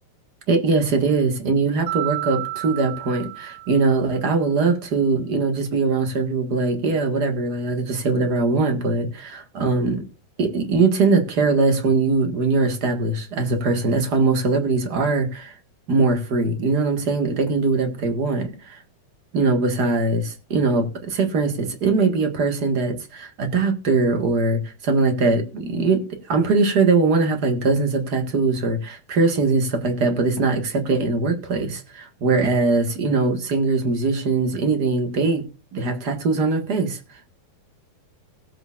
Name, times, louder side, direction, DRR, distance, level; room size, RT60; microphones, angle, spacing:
voice 1, 0.5-10.0 10.4-15.5 15.9-18.8 19.3-26.0 26.3-35.4 35.7-37.0, right 3 dB, 50° right, 5 dB, 1.2 m, -21 dB
Mallet percussion, 1.9-4.2, right 17 dB, 80° right, 1.3 m, -31 dB
19.5 x 7.9 x 2.5 m, 0.31 s
omnidirectional pair, 4.5 m